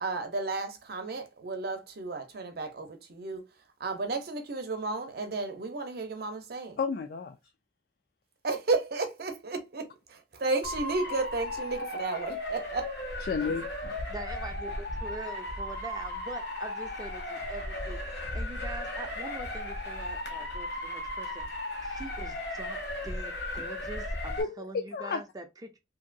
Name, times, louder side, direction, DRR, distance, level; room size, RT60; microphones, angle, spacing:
voice 1, 0.0-3.4 3.8-6.8 8.4-9.9 10.3-12.9, right 3 dB, 60° right, 0.7 m, -33 dB
voice 2, 6.8-7.4 13.3-14.0 24.4-25.2, left 5 dB, 55° left, 0.3 m, -32 dB
Motor vehicle (road) / Siren, 10.6-24.4, left 1 dB, 75° left, 1.1 m, -36 dB
voice 3, 14.1-18.0 18.3-21.4 21.8-22.8 23.0-25.8, right 1 dB, 20° right, 0.5 m, -43 dB
2.9 x 2.7 x 2.5 m
head